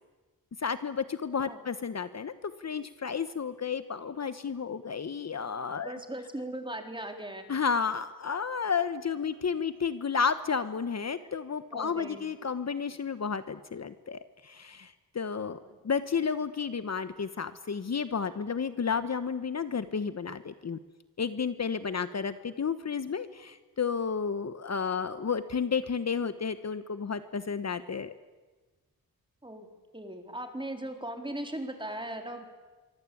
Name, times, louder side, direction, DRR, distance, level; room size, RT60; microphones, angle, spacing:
voice 1, 0.6-6.0 7.5-15.6 15.8-20.8 21.2-28.1, left 6 dB, 45° left, 12 dB, 1.2 m, -32 dB
voice 2, 5.8-7.4 11.7-12.3 29.4-29.7 29.9-32.5, right 1 dB, 15° right, 5 dB, 4.2 m, -38 dB
26.0 x 24.5 x 8.7 m, 1.3 s
wide cardioid pair, 95°, 36 cm